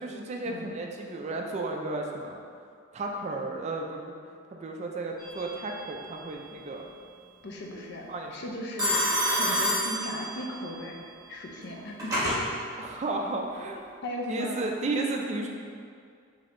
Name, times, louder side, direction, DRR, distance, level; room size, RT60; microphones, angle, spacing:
voice 1, 0.0-2.4 2.9-4.1 4.5-6.9 7.7-7.8 8.1-8.3 12.8-13.8 14.3-15.5, right 2 dB, 35° right, 1 dB, 0.3 m, -33 dB
Telephone, 5.2-5.7 8.8-10.6 11.6-12.4, equal, 20° right, 1.1 m, -28 dB
voice 2, 7.4-12.2 14.0-14.6, left 1 dB, 60° left, 0 dB, 0.5 m, -37 dB
5.1 x 2.8 x 2.5 m, 2.2 s
head